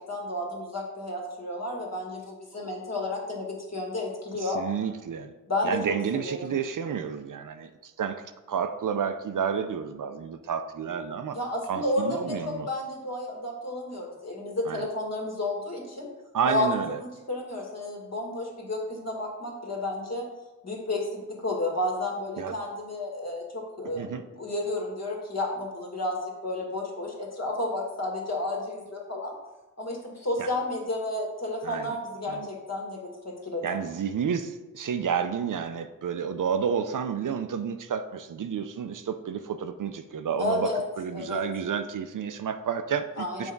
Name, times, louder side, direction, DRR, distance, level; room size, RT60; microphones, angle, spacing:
voice 1, 0.1-4.6 5.5-6.4 11.3-16.1 16.4-20.2 20.6-29.4 29.8-33.0 33.2-33.8 40.4-40.8 41.1-41.4 43.2-43.5, left 1 dB, 50° left, 0 dB, 1.8 m, -31 dB
voice 2, 4.4-5.3 5.6-11.4 11.7-12.7 14.7-14.9 16.3-17.0 22.4-22.6 24.0-24.2 30.4-30.5 31.6-32.0 32.3-32.5 33.6-43.5, right 7 dB, 65° right, 9 dB, 0.5 m, -30 dB
7.0 x 3.5 x 5.2 m, 1.1 s
wide cardioid pair, 85°, 34 cm